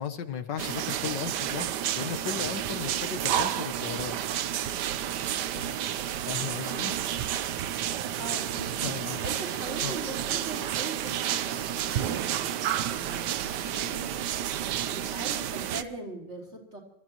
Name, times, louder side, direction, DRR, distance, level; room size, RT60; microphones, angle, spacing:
voice 1, 0.0-4.1 5.5-5.7 6.3-6.9 8.8-9.2 9.8-10.0, left 7 dB, 70° left, 8 dB, 1.6 m, -36 dB
sound 1, 0.6-15.8, right 10 dB, 70° right, 1.2 m, -30 dB
voice 2, 6.7-7.0 8.1-14.1 14.8-16.8, right 2 dB, 35° right, 0 dB, 3.7 m, -41 dB
27.0 x 14.0 x 3.0 m, 0.81 s
omnidirectional pair, 2.0 m